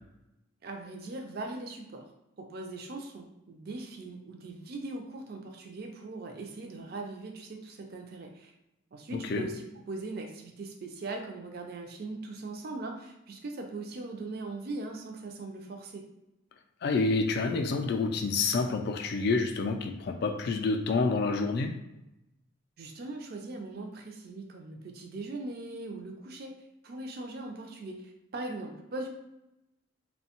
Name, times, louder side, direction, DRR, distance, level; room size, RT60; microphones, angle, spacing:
voice 1, 0.6-2.0 2.5-8.5 8.9-16.0 22.8-26.5 26.8-29.1, right 2 dB, 50° right, 3 dB, 0.4 m, -40 dB
voice 2, 9.1-9.5 16.8-21.7, left 3 dB, 50° left, 5 dB, 0.3 m, -28 dB
2.7 x 2.1 x 2.8 m, 0.92 s
head